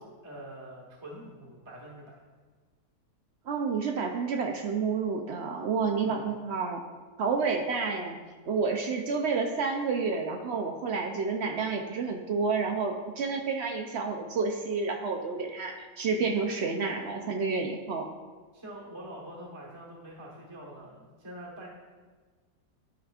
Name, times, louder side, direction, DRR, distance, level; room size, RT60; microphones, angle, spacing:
voice 1, 0.2-2.0 6.0-6.3 18.5-21.7, right 1 dB, 20° right, -4 dB, 1.2 m, -45 dB
voice 2, 3.5-6.8 7.2-8.2 8.5-18.1, right 4 dB, 65° right, 3 dB, 0.7 m, -30 dB
12.0 x 4.8 x 2.4 m, 1.4 s
omnidirectional pair, 1.6 m